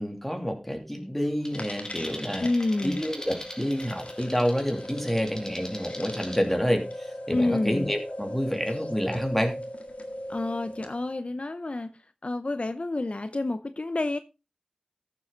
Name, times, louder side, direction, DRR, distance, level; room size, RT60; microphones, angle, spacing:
voice 1, 0.0-2.5 2.8-9.5, equal, 5° left, 2.8 m, -28 dB
sound 1, 1.4-6.4, left 1 dB, 25° left, 3.0 m, -43 dB
sound 2, 1.5-11.1, left 1 dB, 75° left, 1.8 m, -39 dB
voice 2, 2.4-3.0 7.3-7.9 10.3-11.9 12.2-14.2, left 2 dB, 60° left, 0.6 m, -28 dB
14.0 x 7.4 x 3.8 m
wide cardioid pair, 50°, 2 cm